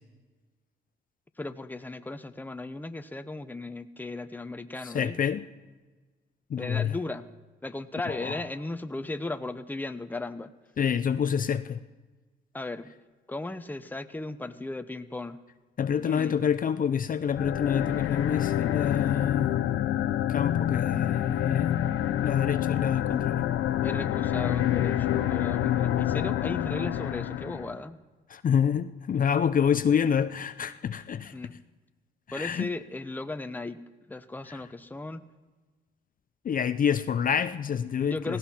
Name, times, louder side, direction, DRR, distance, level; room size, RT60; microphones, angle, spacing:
voice 1, 1.4-5.2 6.6-7.3 7.6-10.5 12.5-12.9 13.3-15.4 16.0-16.4 23.8-28.0 31.3-31.5 32.3-33.8 34.1-35.2 38.0-38.4, left 2 dB, 10° left, 9 dB, 0.9 m, -36 dB
voice 2, 4.8-5.4 6.5-6.9 8.1-8.3 10.8-11.8 15.8-19.5 20.3-21.7 22.2-23.4 28.3-31.3 32.3-32.7 34.5-34.6 36.4-38.4, left 7 dB, 45° left, 11 dB, 0.6 m, -27 dB
sound 1, 17.3-27.8, left 11 dB, 85° left, 0.9 m, -27 dB
17.0 x 17.0 x 4.5 m, 1.3 s
cardioid pair, 90°, 20 cm